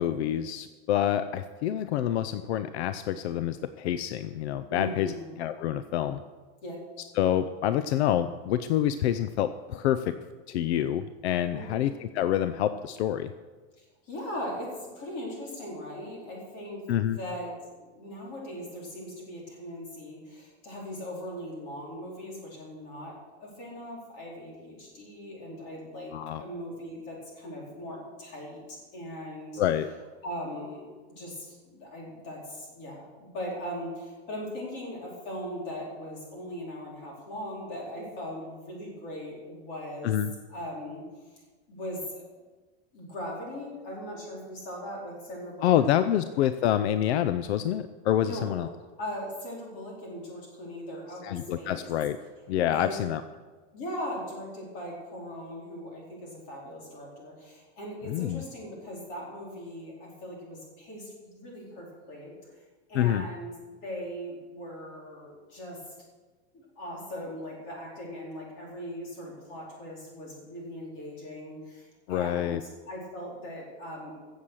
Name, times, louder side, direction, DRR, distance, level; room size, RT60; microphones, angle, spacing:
voice 1, 0.0-6.2 7.1-10.1 10.5-13.3 16.9-17.2 26.1-26.4 29.6-29.9 40.0-40.3 45.6-48.7 51.2-52.2 52.5-53.2 58.1-58.4 62.9-63.3 72.1-72.6, left 11 dB, 75° left, 11 dB, 0.7 m, -27 dB
voice 2, 4.7-5.3 6.6-6.8 11.5-11.8 14.1-14.7 14.9-23.1 23.4-26.1 26.4-29.6 30.2-30.9 31.2-40.1 40.5-41.0 41.7-42.2 42.9-45.8 48.2-48.5 49.0-51.8 52.7-52.9 53.7-62.3 62.9-63.5 63.8-65.8 66.5-74.1, equal, 30° left, -3 dB, 4.3 m, -39 dB
16.5 x 7.3 x 6.3 m, 1.3 s
supercardioid pair, 180°, 33 cm